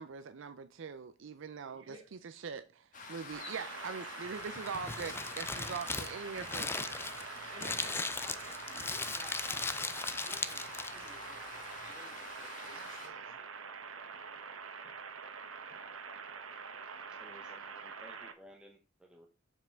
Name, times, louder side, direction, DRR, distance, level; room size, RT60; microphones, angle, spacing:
voice 1, 0.0-7.0 7.6-7.9 12.7-13.3, right 5 dB, 65° right, 0.5 m, -43 dB
sound 1, 2.9-13.1, left 4 dB, 40° left, 1.6 m, -48 dB
sound 2, 3.3-18.3, right 5 dB, 90° right, 1.0 m, -46 dB
Crumpling crinkling, 4.3-11.1, left 3 dB, 10° left, 0.4 m, -38 dB
voice 2, 7.5-13.2, right 1 dB, 25° right, 4.1 m, -56 dB
voice 3, 17.2-19.3, equal, 5° right, 0.8 m, -57 dB
7.3 x 5.5 x 4.5 m
head